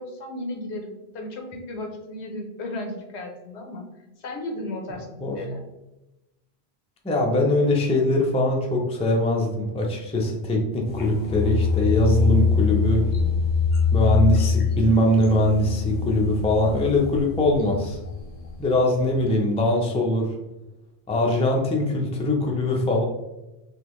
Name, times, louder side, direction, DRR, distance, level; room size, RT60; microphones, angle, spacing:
voice 1, 0.0-3.8 4.2-5.6, left 1 dB, 90° left, 3 dB, 1.1 m, -35 dB
voice 2, 7.0-13.1 13.9-18.0 18.6-20.3 21.1-23.0, left 1 dB, 10° left, 0 dB, 0.3 m, -22 dB
sound 1, 10.9-18.7 19.1-19.3, left 5 dB, 50° left, 0.7 m, -24 dB
3.8 x 3.0 x 3.0 m, 0.99 s
omnidirectional pair, 1.1 m